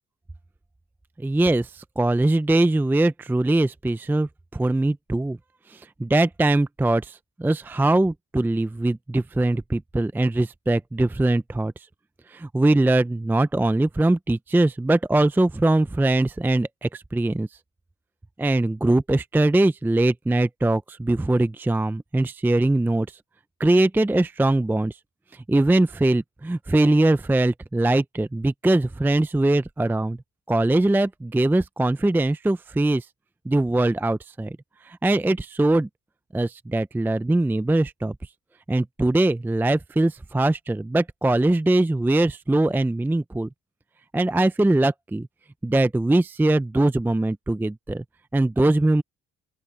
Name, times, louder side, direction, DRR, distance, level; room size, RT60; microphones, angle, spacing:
voice 1, 1.2-5.4 5.7-11.7 12.3-17.5 18.4-23.1 23.6-25.0 25.3-30.2 30.5-33.1 33.5-34.6 34.8-35.9 36.3-38.1 38.7-43.5 44.1-45.3 45.6-48.0 48.3-49.0, right 2 dB, 5° right, 0.5 m, -22 dB
open air
cardioid pair, 90°, 30 cm